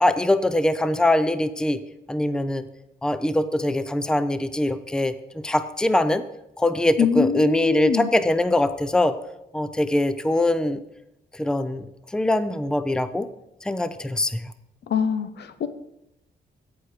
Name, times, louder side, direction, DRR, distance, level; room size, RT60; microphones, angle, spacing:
voice 1, 0.0-1.8 2.1-2.7 3.0-5.1 5.4-6.2 6.6-9.1 9.5-10.8 11.3-11.9 12.1-13.3 13.6-14.5, left 1 dB, 5° left, 12 dB, 0.5 m, -22 dB
voice 2, 7.0-8.1 14.9-15.7, left 7 dB, 70° left, 11 dB, 0.8 m, -23 dB
14.0 x 4.8 x 4.9 m, 0.87 s
cardioid pair, 75°, 18 cm